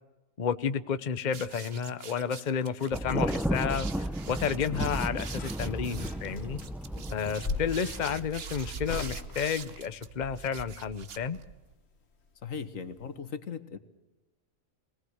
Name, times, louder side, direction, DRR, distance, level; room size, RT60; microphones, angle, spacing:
voice 1, 0.4-6.6 7.1-11.4, left 7 dB, 40° left, 12 dB, 0.9 m, -31 dB
sound 1, 1.3-11.7, right 7 dB, 50° right, 1.1 m, -44 dB
Thunder, 2.9-8.3, equal, ahead, 0.5 m, -33 dB
sound 2, 4.5-10.4 11.8-12.7 13.0-13.1, left 3 dB, 55° left, 2.0 m, -40 dB
voice 2, 12.4-13.8, left 6 dB, 85° left, 11 dB, 1.8 m, -39 dB
24.0 x 18.5 x 8.0 m, 1.1 s
omnidirectional pair, 1.3 m